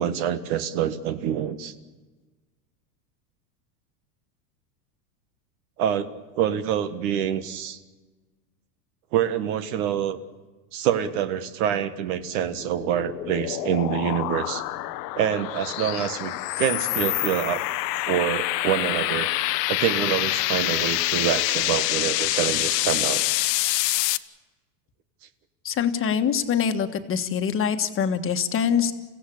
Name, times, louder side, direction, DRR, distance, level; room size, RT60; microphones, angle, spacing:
voice 1, 0.0-1.7 5.8-7.8 9.1-10.2 10.7-14.6 15.1-17.6 18.1-19.3 19.7-23.2 24.0-24.1, right 9 dB, 65° right, 10 dB, 1.7 m, -26 dB
sound 1, 12.2-24.2, left 17 dB, 80° left, 1.1 m, -26 dB
voice 2, 25.6-28.9, left 7 dB, 25° left, 7 dB, 1.5 m, -24 dB
29.5 x 16.0 x 8.6 m, 1.3 s
supercardioid pair, 135°, 48 cm